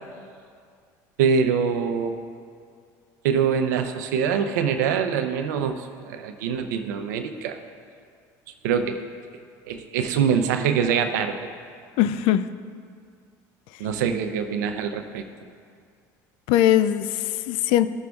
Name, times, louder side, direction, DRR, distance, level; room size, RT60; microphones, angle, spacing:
voice 1, 1.2-2.2 3.2-7.6 8.6-9.0 9.7-11.4 13.8-15.2, right 7 dB, 90° right, 7 dB, 0.6 m, -24 dB
voice 2, 12.0-12.5 16.5-17.9, left 11 dB, 70° left, 14 dB, 0.4 m, -20 dB
15.0 x 6.2 x 2.4 m, 2.2 s
supercardioid pair, 90°, 9 cm